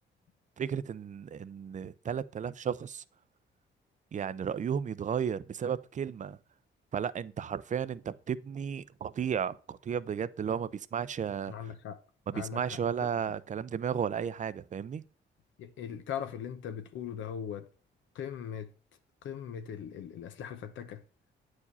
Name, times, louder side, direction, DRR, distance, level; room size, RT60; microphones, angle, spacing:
voice 1, 0.6-3.0 4.1-6.4 6.9-11.7 12.3-15.0, right 7 dB, 40° right, 0.6 m, -34 dB
voice 2, 11.5-12.0 12.3-12.8 15.6-17.7 18.1-18.7 19.2-21.0, left 8 dB, 75° left, 0.9 m, -39 dB
8.6 x 4.9 x 4.0 m
cardioid pair, 90°, 20 cm